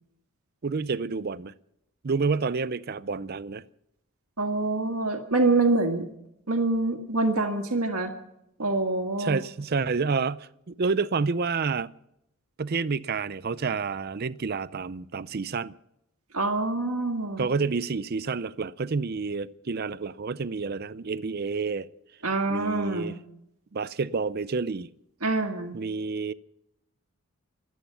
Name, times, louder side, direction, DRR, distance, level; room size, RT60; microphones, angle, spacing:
voice 1, 0.6-1.5 2.0-3.6 9.2-11.9 12.6-15.7 17.4-21.9 22.5-23.1 23.7-24.9 25.7-26.3, right 4 dB, 45° right, 0.5 m, -29 dB
voice 2, 4.4-6.1 6.5-8.1 8.6-9.4 16.3-17.5 22.2-23.1 25.2-25.8, right 2 dB, 75° right, 1.8 m, -25 dB
25.0 x 9.3 x 5.7 m
head